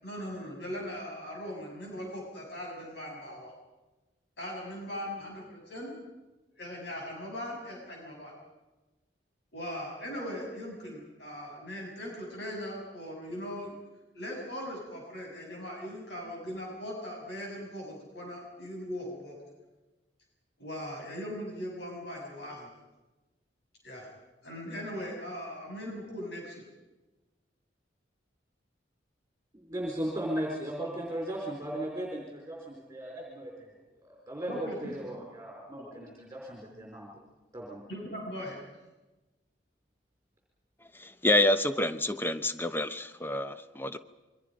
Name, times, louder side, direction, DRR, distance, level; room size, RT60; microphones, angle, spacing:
voice 1, 0.0-3.5 4.4-5.9 6.5-8.3 9.5-13.8 14.1-19.4 20.6-22.7 23.8-24.1 24.4-26.6 34.5-35.0 35.9-36.0 37.9-38.6, equal, 65° left, -1 dB, 7.3 m, -39 dB
voice 2, 29.5-33.7 34.0-37.2 37.5-37.8, right 1 dB, 15° right, -2 dB, 4.4 m, -37 dB
voice 3, 41.0-44.0, left 1 dB, 10° left, 11 dB, 0.8 m, -28 dB
28.5 x 23.5 x 5.3 m, 1.1 s
head